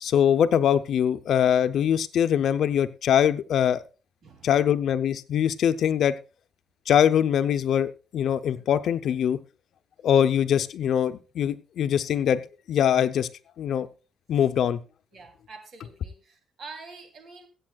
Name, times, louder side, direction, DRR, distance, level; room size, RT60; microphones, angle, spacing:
voice 1, 0.0-3.8 4.4-6.2 6.9-9.4 10.0-12.4 12.7-13.3 13.6-13.9 14.3-14.8, left 9 dB, 70° left, 11 dB, 0.7 m, -22 dB
voice 2, 4.2-4.8 15.1-17.5, right 4 dB, 55° right, 5 dB, 3.0 m, -46 dB
22.0 x 8.4 x 2.4 m, 0.33 s
cardioid pair, 110°, 0 cm